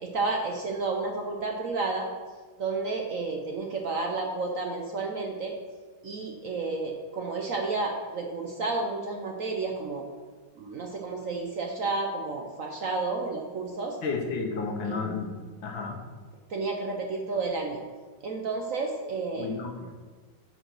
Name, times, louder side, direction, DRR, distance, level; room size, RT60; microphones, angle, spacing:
voice 1, 0.0-2.1 2.6-5.5 6.0-10.0 10.6-14.0 14.8-15.1 16.5-17.8 18.2-19.5, right 3 dB, 60° right, 2 dB, 0.9 m, -31 dB
voice 2, 14.0-15.3 15.6-16.0 19.3-19.9, left 4 dB, 80° left, 2 dB, 1.9 m, -32 dB
7.7 x 5.0 x 6.2 m, 1.5 s
omnidirectional pair, 2.1 m